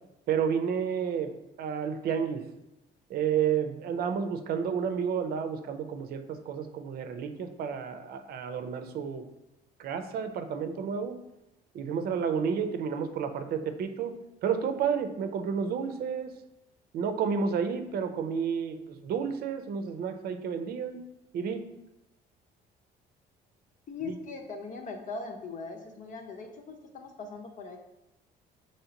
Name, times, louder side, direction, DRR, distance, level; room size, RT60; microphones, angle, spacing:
voice 1, 0.3-1.3 1.6-2.4 3.1-9.2 9.8-11.2 11.7-14.1 14.4-16.3 16.9-21.0 21.3-21.6 24.1-24.2, right 7 dB, 65° right, 8 dB, 0.6 m, -31 dB
voice 2, 23.9-27.8, left 4 dB, 50° left, 3 dB, 0.9 m, -40 dB
5.6 x 3.1 x 2.9 m, 0.93 s
cardioid pair, 110°, 17 cm